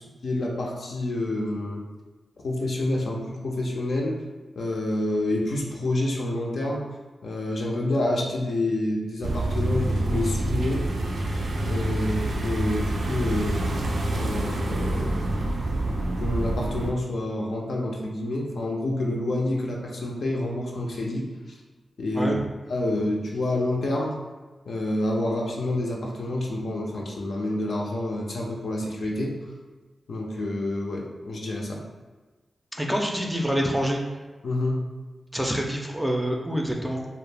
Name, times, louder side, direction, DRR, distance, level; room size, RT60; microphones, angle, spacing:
voice 1, 0.0-1.8 2.4-4.2 4.6-6.8 7.2-10.8 11.6-13.7 14.1-15.2 16.2-21.2 22.0-22.3 22.7-24.2 24.7-29.3 30.1-31.8 34.4-34.8, left 1 dB, 75° left, -2 dB, 0.5 m, -28 dB
sound 1, 9.2-16.9, right 1 dB, 80° right, 0.4 m, -27 dB
voice 2, 32.8-34.0 35.3-37.1, equal, 5° right, 0 dB, 0.4 m, -26 dB
2.4 x 2.0 x 3.3 m, 1.2 s
cardioid pair, 65°, 0 cm